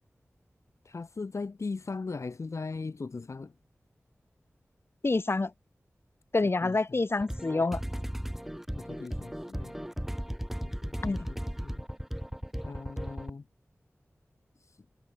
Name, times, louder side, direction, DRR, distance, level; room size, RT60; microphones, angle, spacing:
voice 1, 0.8-3.5 6.4-7.0 8.8-9.8 10.6-11.8 12.6-13.5 14.6-14.8, left 4 dB, 75° left, 3.0 m, -39 dB
voice 2, 5.0-5.5 6.3-7.8 11.0-11.3, left 3 dB, 50° left, 1.7 m, -27 dB
sound 1, 7.2-13.3, equal, 5° right, 5.0 m, -36 dB
wide cardioid pair, 55°, 5 cm